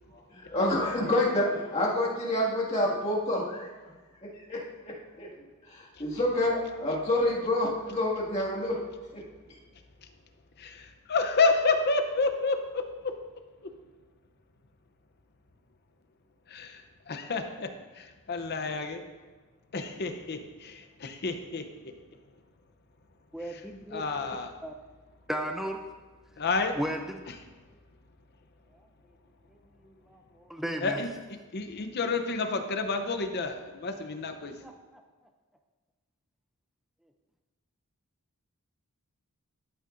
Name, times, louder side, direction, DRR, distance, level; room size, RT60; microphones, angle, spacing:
voice 1, 0.3-3.7 4.5-4.6 5.2-5.3 5.7-8.8 9.1-9.2, left 1 dB, 30° left, -5 dB, 2.1 m, -27 dB
voice 2, 10.6-12.8 16.5-16.8 17.1-17.7 18.0-19.0 19.7-21.6 23.9-24.5 26.4-26.8 30.8-31.1 31.5-34.5, left 3 dB, 45° left, 6 dB, 0.7 m, -29 dB
voice 3, 23.3-24.0 24.6-24.7 25.3-25.8 26.7-27.2 29.8-31.0 34.6-35.0, equal, ahead, 4 dB, 0.4 m, -35 dB
12.5 x 8.4 x 2.6 m, 1.3 s
head